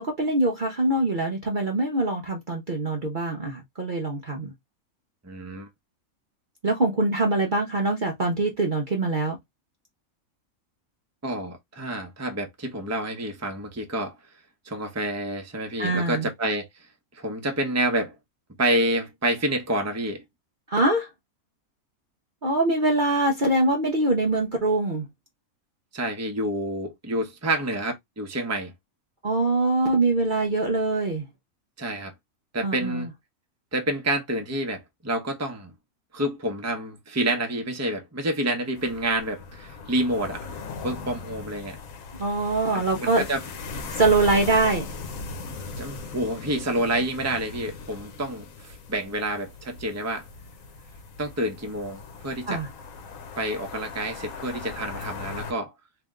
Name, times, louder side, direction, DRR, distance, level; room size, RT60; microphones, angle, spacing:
voice 1, 0.0-4.5 6.6-9.4 15.8-16.3 20.7-21.1 22.4-25.1 29.2-31.3 32.6-33.1 42.2-43.2 43.9-44.9 52.5-52.7, right 2 dB, 40° right, 0.8 m, -23 dB
voice 2, 5.2-5.7 11.2-14.1 14.6-16.7 17.1-18.1 18.6-20.2 25.9-28.7 31.8-32.1 32.5-33.1 33.7-35.7 36.1-40.5 40.8-41.8 42.7-43.4 45.8-50.3 51.2-52.6 53.4-55.7, right 1 dB, 15° right, 0.8 m, -28 dB
sound 1, 38.8-55.5, left 4 dB, 70° left, 1.2 m, -39 dB
3.4 x 2.9 x 3.6 m
omnidirectional pair, 1.5 m